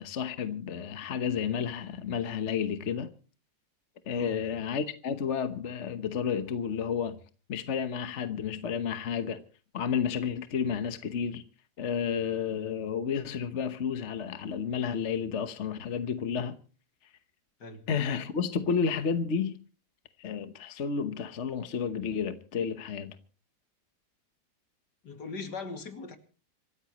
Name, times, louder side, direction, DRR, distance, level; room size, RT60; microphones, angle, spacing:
voice 1, 0.0-3.1 4.1-7.2 7.5-9.4 9.7-11.4 11.8-16.6 17.9-19.6 20.2-23.1, left 7 dB, 45° left, 1.2 m, -31 dB
voice 2, 4.1-4.6 17.6-17.9 25.0-26.2, left 4 dB, 70° left, 2.8 m, -40 dB
26.5 x 14.0 x 3.0 m
omnidirectional pair, 1.9 m